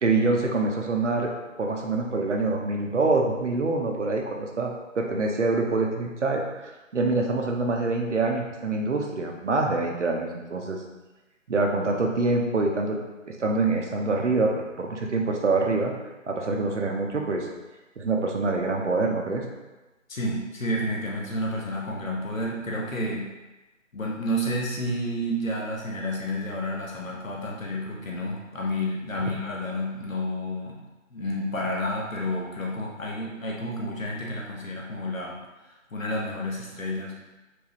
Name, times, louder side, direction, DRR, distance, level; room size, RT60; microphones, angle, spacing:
voice 1, 0.0-1.3 1.6-6.4 6.9-10.8 11.5-13.0 13.4-14.5 14.8-15.9 16.3-17.5 18.0-19.4, right 3 dB, 60° right, 1 dB, 0.8 m, -25 dB
voice 2, 20.1-23.3 23.9-30.8 31.1-35.4 35.9-37.2, equal, 75° left, -2 dB, 1.2 m, -30 dB
4.7 x 2.6 x 2.9 m, 1.1 s
figure-of-eight pair, 155°, 40 cm